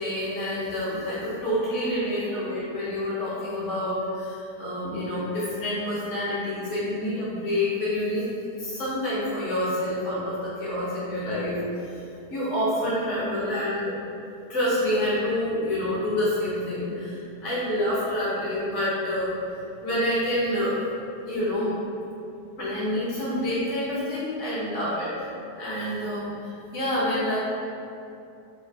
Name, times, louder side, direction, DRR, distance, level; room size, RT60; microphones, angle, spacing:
voice 1, 0.0-8.3 8.6-12.0 12.3-14.0 14.5-19.3 19.8-20.8 21.3-21.8 22.6-25.3 25.6-27.4, left 1 dB, 50° left, -10 dB, 1.1 m, -27 dB
3.2 x 2.4 x 2.5 m, 2.6 s
omnidirectional pair, 1.9 m